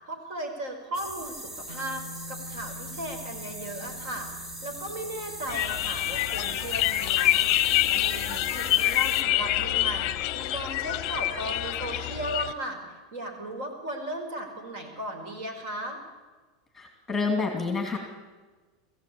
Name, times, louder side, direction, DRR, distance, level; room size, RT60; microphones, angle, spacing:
voice 1, 0.1-4.3 4.6-12.8 13.1-16.0, right 1 dB, 50° right, 3 dB, 5.3 m, -36 dB
sound 1, 0.9-9.2, right 1 dB, 15° right, 0.9 m, -40 dB
Bass guitar, 1.7-7.9, left 1 dB, 75° right, 4.3 m, -47 dB
sound 2, 5.5-12.5, left 15 dB, 35° left, 0.8 m, -26 dB
voice 2, 16.7-18.0, left 4 dB, 5° left, 2 dB, 2.6 m, -28 dB
21.0 x 16.0 x 8.7 m, 1.3 s
supercardioid pair, 180°, 2 cm